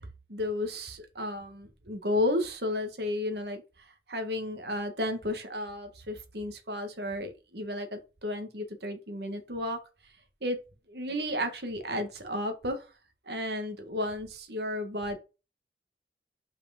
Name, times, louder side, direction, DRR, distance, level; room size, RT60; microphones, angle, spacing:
voice 1, 0.3-3.6 4.1-9.8 10.4-10.6 10.9-12.9 13.3-15.2, left 1 dB, 70° right, 1.7 m, -33 dB
5.9 x 5.0 x 5.1 m
head